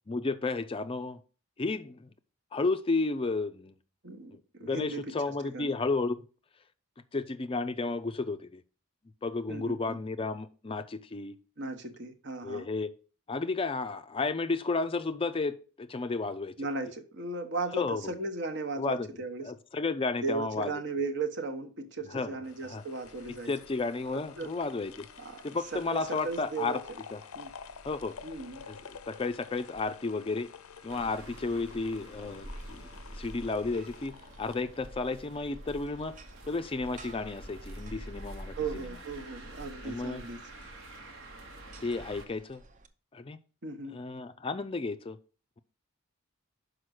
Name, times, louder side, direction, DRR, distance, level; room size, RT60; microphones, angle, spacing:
voice 1, 0.1-1.2 1.6-2.1 2.5-3.7 4.3-6.2 7.1-8.6 9.2-11.4 12.4-12.9 13.3-16.5 17.7-18.1 18.8-19.1 19.4-20.7 22.1-22.8 23.5-25.1 25.4-26.8 27.1-27.2 27.8-28.2 28.7-30.5 30.8-36.1 36.5-39.0 39.8-40.2 41.8-42.6 43.1-43.4 43.9-45.2, left 3 dB, 25° left, 0.4 m, -32 dB
voice 2, 4.0-5.0 5.5-5.7 9.5-10.0 11.6-12.7 16.6-19.5 20.2-23.5 24.1-24.5 25.2-25.4 25.7-26.8 27.3-27.5 28.2-28.6 38.6-40.4 43.6-44.0, right 3 dB, 55° right, 1.0 m, -36 dB
sound 1, 22.4-35.7 36.0-36.1, left 7 dB, 80° left, 0.5 m, -50 dB
sound 2, 23.0-42.9, right 1 dB, 35° right, 0.6 m, -51 dB
sound 3, 30.9-42.3, right 1 dB, 70° right, 1.2 m, -50 dB
6.0 x 5.0 x 6.3 m
head